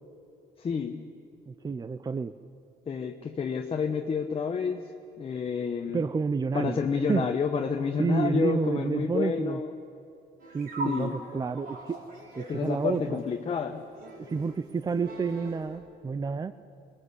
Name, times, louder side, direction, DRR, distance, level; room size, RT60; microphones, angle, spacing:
voice 1, 0.6-1.1 2.9-4.9 5.2-6.0 6.5-9.7 10.8-11.1 12.5-13.9, left 6 dB, 35° left, 3 dB, 1.2 m, -29 dB
voice 2, 1.5-2.3 5.9-6.8 7.1-7.3 8.0-9.6 10.5-12.0 12.4-13.2 14.2-16.5, right 5 dB, 25° right, 12 dB, 0.6 m, -29 dB
sound 1, 10.4-15.8, right 1 dB, 65° right, 6.0 m, -42 dB
23.0 x 20.5 x 8.2 m, 2.7 s
cardioid pair, 110°, 17 cm